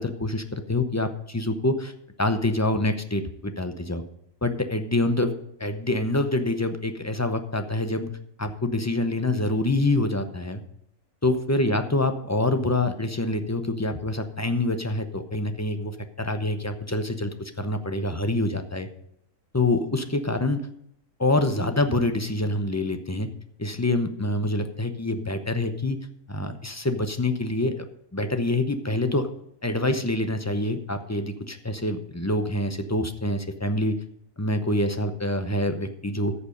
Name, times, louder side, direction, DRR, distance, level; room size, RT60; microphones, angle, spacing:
voice 1, 0.0-1.9 2.2-4.0 4.4-8.1 8.4-10.6 11.2-18.9 19.5-20.7 21.2-23.3 23.6-26.0 26.3-27.9 28.1-29.3 29.6-34.0 34.4-36.3, left 2 dB, 15° left, 8 dB, 0.6 m, -26 dB
14.0 x 7.1 x 5.2 m, 0.75 s
omnidirectional pair, 1.4 m